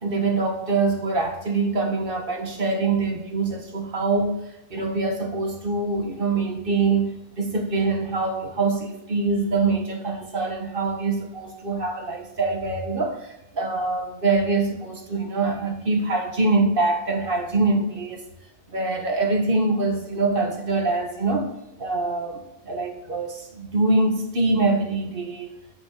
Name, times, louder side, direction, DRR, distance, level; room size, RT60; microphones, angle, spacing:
voice 1, 0.0-4.4 4.7-18.3 18.7-25.5, right 3 dB, 40° right, 1.4 m, -24 dB
9.3 x 5.8 x 3.6 m
omnidirectional pair, 1.5 m